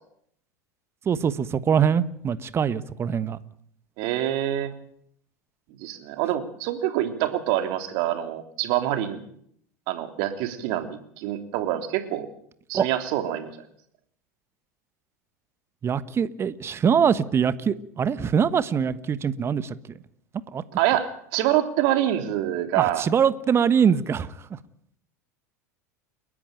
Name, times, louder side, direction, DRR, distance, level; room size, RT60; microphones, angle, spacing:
voice 1, 1.0-3.4 12.7-12.9 15.8-19.7 20.5-20.6 22.7-24.3, right 7 dB, 30° right, 14 dB, 1.3 m, -23 dB
voice 2, 4.0-4.7 5.8-9.2 9.9-12.3 12.7-13.6 20.8-23.0, right 12 dB, 55° right, 6 dB, 3.3 m, -26 dB
30.0 x 11.0 x 9.2 m, 0.68 s
figure-of-eight pair, 80°, 9 cm